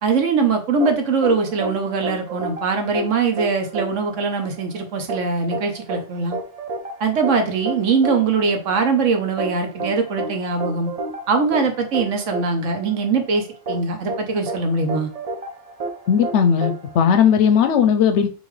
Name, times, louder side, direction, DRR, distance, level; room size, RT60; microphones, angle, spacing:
voice 1, 0.0-6.4 7.0-10.9 11.3-15.1, right 4 dB, 70° right, 1.2 m, -21 dB
sound 1, 0.8-17.7, right 3 dB, 45° right, 0.5 m, -31 dB
voice 2, 16.1-18.3, left 7 dB, 70° left, 0.8 m, -17 dB
5.3 x 2.7 x 3.2 m
omnidirectional pair, 1.3 m